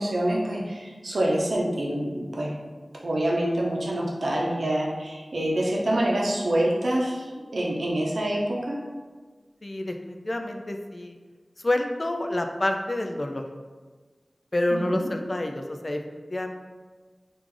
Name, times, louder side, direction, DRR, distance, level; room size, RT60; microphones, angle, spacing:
voice 1, 0.0-2.5 3.0-8.8 14.7-15.1, right 1 dB, 80° right, -3 dB, 0.6 m, -26 dB
voice 2, 9.6-11.2 11.6-13.5 14.5-16.5, left 1 dB, 40° left, 4 dB, 0.3 m, -28 dB
3.1 x 2.5 x 3.7 m, 1.4 s
wide cardioid pair, 70°, 0 cm